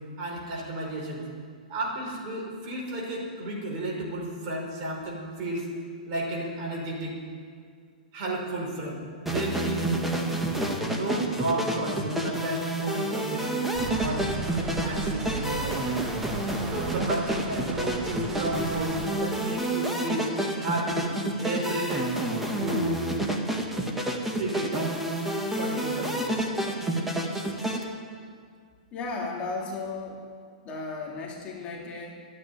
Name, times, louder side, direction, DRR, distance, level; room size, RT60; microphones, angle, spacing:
voice 1, 0.2-1.3 1.7-5.7 6.1-7.2 8.1-10.1 10.8-14.3 14.7-15.8 16.7-20.3 20.6-21.1 21.4-22.1 22.5-23.0 24.4-24.9 25.6-26.4, right 1 dB, 40° right, -2 dB, 5.2 m, -32 dB
sound 1, 9.3-27.8, right 1 dB, 5° right, 1.8 m, -29 dB
sound 2, 13.8-19.1, right 4 dB, 20° right, 1.4 m, -37 dB
voice 2, 28.9-30.3 30.6-32.2, left 3 dB, 25° left, -1 dB, 2.5 m, -35 dB
13.5 x 9.8 x 9.8 m, 2.1 s
hypercardioid pair, 140°, 5 cm